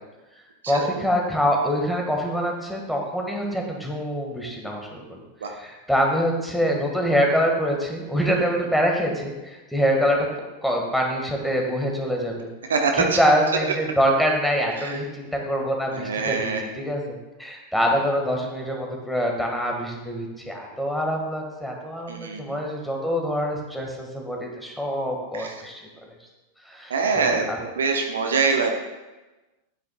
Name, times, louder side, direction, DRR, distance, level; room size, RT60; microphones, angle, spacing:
voice 1, 0.7-5.2 5.5-10.3 10.6-12.5 12.9-26.0 26.6-27.6, equal, 5° left, 0 dB, 1.7 m, -25 dB
voice 2, 12.7-13.2 14.8-15.0 15.9-16.6 22.1-22.6 25.3-25.6 26.9-28.7, right 4 dB, 65° right, 3 dB, 1.0 m, -24 dB
11.0 x 9.2 x 2.3 m, 1.1 s
figure-of-eight pair, 90°, 0 cm